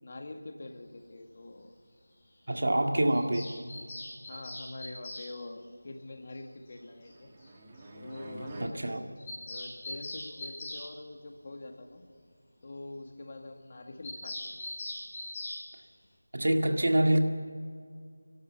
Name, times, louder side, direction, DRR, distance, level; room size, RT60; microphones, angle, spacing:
voice 1, 0.0-1.7 2.7-2.8 4.3-7.3 7.9-9.1 9.4-12.0 12.6-14.6, left 2 dB, 40° left, 4 dB, 1.8 m, -45 dB
voice 2, 2.5-3.5 8.6-9.0 16.3-17.2, right 1 dB, 65° right, 5 dB, 1.9 m, -26 dB
Bird vocalization bird call bird song, 3.1-5.3 6.7-6.8 7.0-7.1 7.4-7.5 7.8-7.9 8.1-8.2 8.5-8.6 8.9-10.8 14.0-15.6, left 1 dB, 20° left, 5.6 m, -41 dB
sound 1, 6.7-8.7, right 2 dB, 25° right, 1.5 m, -46 dB
30.0 x 12.5 x 7.0 m, 2.1 s
figure-of-eight pair, 170°, 0 cm